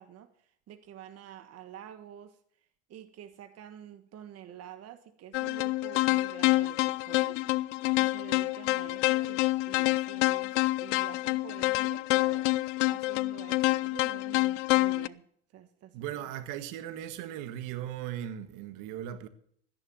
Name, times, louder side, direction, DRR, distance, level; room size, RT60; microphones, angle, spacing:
voice 1, 0.0-2.4 2.9-12.5 12.9-15.3 15.5-15.9, right 10 dB, 40° right, 1.4 m, -48 dB
sound 1, 5.3-15.1, left 21 dB, 75° left, 0.6 m, -27 dB
voice 2, 15.9-19.3, right 11 dB, 60° right, 1.6 m, -38 dB
13.5 x 10.5 x 7.0 m
supercardioid pair, 100°, 36 cm